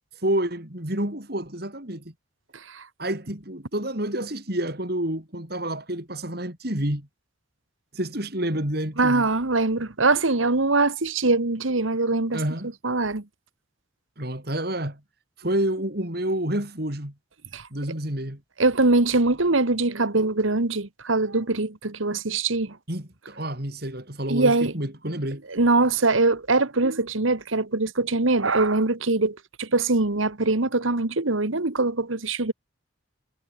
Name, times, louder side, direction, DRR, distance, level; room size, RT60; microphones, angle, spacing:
voice 1, 0.2-2.1 3.0-7.1 7.9-9.3 12.3-12.7 14.2-15.0 15.4-17.1 17.7-18.4 22.9-25.4, right 1 dB, 50° right, 4.5 m, -29 dB
voice 2, 9.0-12.4 12.8-13.2 17.5-17.6 18.6-22.8 24.3-24.7 25.5-32.5, right 3 dB, 85° right, 1.8 m, -22 dB
head